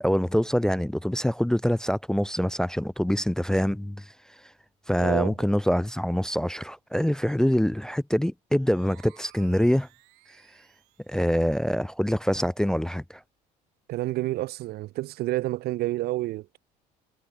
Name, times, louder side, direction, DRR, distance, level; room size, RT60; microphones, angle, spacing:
voice 1, 0.0-4.1 4.9-9.9 11.1-13.2, equal, 5° left, 0.4 m, -25 dB
voice 2, 5.0-5.5 13.9-16.6, right 17 dB, 65° right, 0.6 m, -29 dB
sound 1, 8.5-11.2, right 33 dB, 85° right, 2.4 m, -57 dB
supercardioid pair, 90°, 18 cm